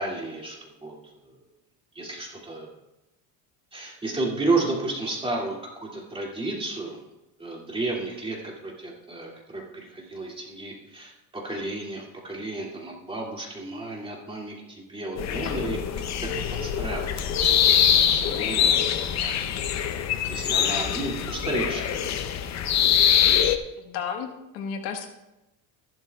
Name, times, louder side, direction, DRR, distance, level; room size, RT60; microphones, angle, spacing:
voice 1, 0.0-1.4 1.9-2.7 3.7-7.0 7.4-16.3 16.6-17.1 17.4-17.6 17.8-19.4 20.3-22.2, right 2 dB, 15° right, -3 dB, 2.5 m, -32 dB
sound 1, 15.2-23.6, left 9 dB, 40° left, 0.7 m, -23 dB
voice 2, 23.8-25.1, left 7 dB, 80° left, 4 dB, 1.6 m, -33 dB
14.0 x 12.0 x 2.4 m, 0.95 s
cardioid pair, 145°, 43 cm